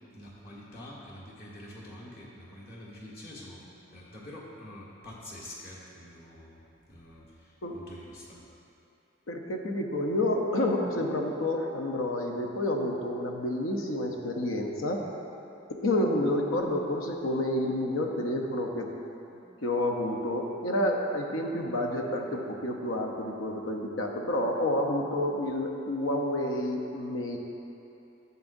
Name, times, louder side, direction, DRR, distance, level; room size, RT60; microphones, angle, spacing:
voice 1, 0.1-3.6 3.9-6.6 6.9-8.4, left 1 dB, 50° left, -5 dB, 1.5 m, -46 dB
voice 2, 9.3-15.0 15.8-18.9 19.6-27.4, left 1 dB, 90° left, 2 dB, 0.8 m, -29 dB
11.0 x 7.0 x 2.6 m, 2.9 s
head